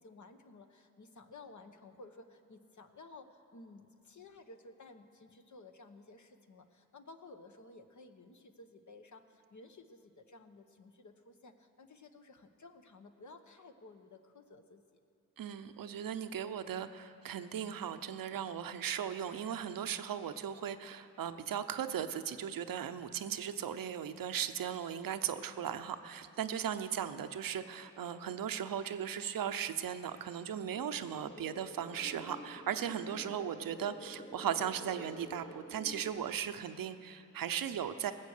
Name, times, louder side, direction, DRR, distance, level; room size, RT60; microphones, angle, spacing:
voice 1, 0.0-14.8, left 3 dB, 55° left, 6 dB, 1.1 m, -55 dB
voice 2, 15.4-38.1, right 9 dB, 75° right, 10 dB, 0.7 m, -37 dB
sound 1, 30.7-36.1, equal, 25° left, 2.5 m, -49 dB
19.0 x 7.4 x 6.6 m, 2.6 s
supercardioid pair, 40°, 34 cm